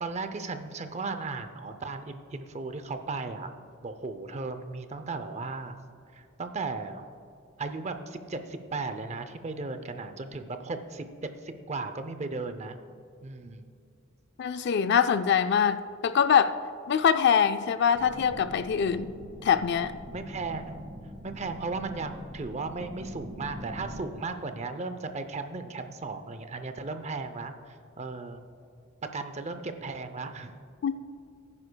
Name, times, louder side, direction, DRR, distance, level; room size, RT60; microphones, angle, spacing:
voice 1, 0.0-3.5 3.8-5.8 6.1-7.0 7.6-11.1 11.4-12.8 13.2-13.7 20.1-20.9 21.2-28.4 29.1-30.5, right 3 dB, 35° right, 9 dB, 0.5 m, -36 dB
voice 2, 14.4-16.6 16.9-19.1 19.4-19.9 30.8-30.9, left 7 dB, 55° left, 11 dB, 0.3 m, -23 dB
sound 1, 17.9-24.0, equal, 15° right, 1.6 m, -43 dB
16.0 x 9.7 x 2.2 m, 2.4 s
head